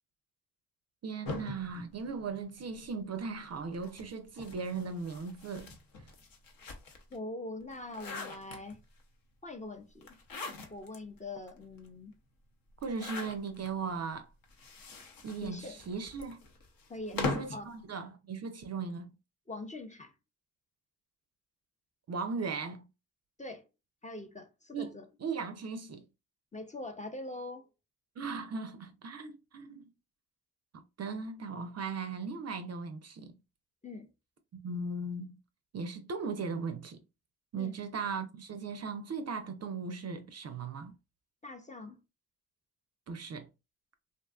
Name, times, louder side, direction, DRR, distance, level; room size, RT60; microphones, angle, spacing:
voice 1, 1.0-5.8 12.8-14.3 15.2-16.4 17.1-19.1 22.1-22.9 24.7-24.9 25.2-26.0 28.2-29.9 30.7-33.3 34.5-35.4 35.7-37.0 37.5-40.9 43.1-43.5, right 4 dB, 40° right, 0.5 m, -38 dB
sound 1, 1.2-2.8 3.7-7.2 7.6-9.0 10.0-11.0 11.5-11.6 11.8-11.9 12.8-13.7 14.4-17.6, left 3 dB, 60° left, 0.8 m, -41 dB
voice 2, 7.1-8.8 9.4-10.2 10.7-12.1 15.4-15.8 16.9-17.2 17.5-17.8 19.5-20.1 23.4-23.7 24.0-25.1 26.5-27.7 33.8-34.1 37.6-37.7 41.4-42.0, left 2 dB, 20° left, 0.5 m, -43 dB
2.6 x 2.3 x 2.3 m
supercardioid pair, 45°, 39 cm